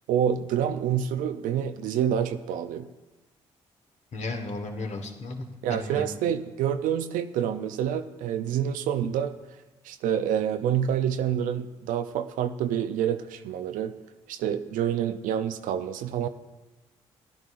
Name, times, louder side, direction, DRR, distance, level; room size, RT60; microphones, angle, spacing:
voice 1, 0.1-2.9 5.6-9.3 9.8-13.9 14.3-16.3, right 9 dB, 75° right, 10 dB, 0.5 m, -27 dB
voice 2, 4.1-6.1, left 2 dB, 55° left, 4 dB, 1.4 m, -35 dB
13.5 x 11.0 x 2.5 m, 1.1 s
hypercardioid pair, 50°, 14 cm